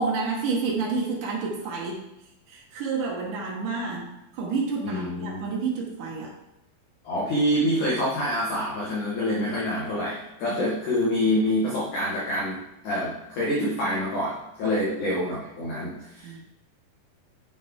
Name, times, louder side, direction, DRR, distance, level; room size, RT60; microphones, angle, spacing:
voice 1, 0.0-2.0 2.5-4.1 4.3-6.3 10.5-10.6 14.6-14.7 16.2-16.4, right 4 dB, 75° right, -1 dB, 1.9 m, -29 dB
voice 2, 4.8-5.5 7.0-12.6 12.8-16.4, equal, 60° left, -6 dB, 2.1 m, -26 dB
8.2 x 6.8 x 3.6 m, 0.89 s
omnidirectional pair, 5.5 m